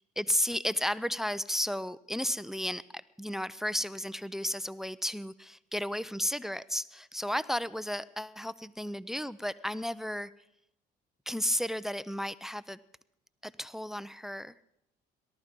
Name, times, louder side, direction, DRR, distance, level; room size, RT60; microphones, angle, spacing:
voice 1, 0.2-10.3 11.3-12.8 13.4-14.6, equal, ahead, 19 dB, 0.5 m, -33 dB
18.0 x 13.0 x 5.3 m, 0.78 s
supercardioid pair, 75°, 20 cm